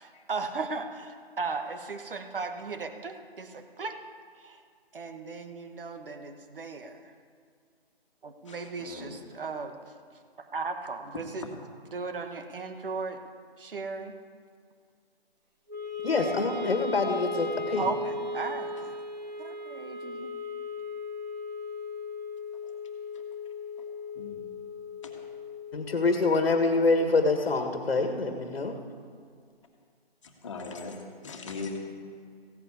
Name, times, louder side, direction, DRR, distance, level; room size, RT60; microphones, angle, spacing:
voice 1, 0.0-4.0 4.4-4.6 4.9-7.1 8.2-9.8 10.5-11.5 11.9-13.2 13.6-14.2 17.8-18.9 19.4-20.3, right 4 dB, 60° right, 7 dB, 1.5 m, -36 dB
voice 2, 8.4-9.2 24.1-24.5 25.0-25.1 30.4-31.0 31.2-31.8, left 4 dB, 30° left, 1 dB, 1.7 m, -39 dB
Wind instrument woodwind instrument, 15.7-27.9, left 3 dB, 45° right, 1.8 m, -37 dB
voice 3, 16.0-17.9 25.7-28.8, left 3 dB, 70° left, 5 dB, 1.7 m, -26 dB
16.0 x 8.6 x 8.4 m, 2.1 s
hypercardioid pair, 170°, 31 cm